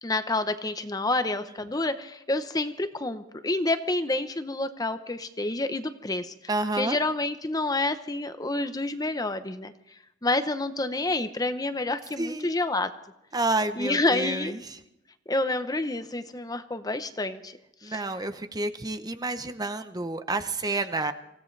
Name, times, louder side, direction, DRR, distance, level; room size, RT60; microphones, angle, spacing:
voice 1, 0.0-6.3 6.8-9.7 10.2-12.9 13.8-14.5 15.3-17.6 17.8-18.0, left 2 dB, 20° left, 10 dB, 0.8 m, -28 dB
voice 2, 6.5-7.0 12.2-12.6 13.3-14.8 17.8-21.1, right 2 dB, 20° right, 9 dB, 0.7 m, -29 dB
25.0 x 16.5 x 3.3 m, 0.86 s
head